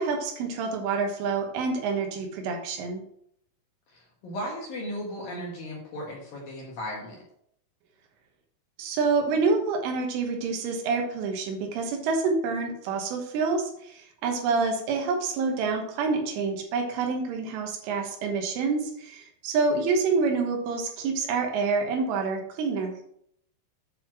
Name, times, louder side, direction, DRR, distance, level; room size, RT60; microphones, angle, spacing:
voice 1, 0.0-3.0 8.8-22.9, right 4 dB, 80° right, 3 dB, 3.6 m, -27 dB
voice 2, 3.9-7.2, equal, 60° left, -3 dB, 2.5 m, -36 dB
9.1 x 4.3 x 6.0 m, 0.69 s
omnidirectional pair, 5.9 m